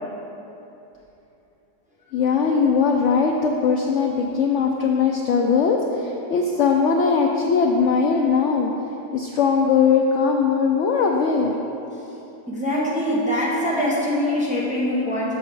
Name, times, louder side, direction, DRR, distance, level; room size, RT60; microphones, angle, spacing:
voice 1, 2.1-8.7 9.1-11.5, left 5 dB, 80° left, 1 dB, 0.6 m, -20 dB
voice 2, 12.5-15.4, left 1 dB, 5° right, -6 dB, 1.0 m, -23 dB
6.9 x 6.6 x 4.6 m, 3.0 s
omnidirectional pair, 1.8 m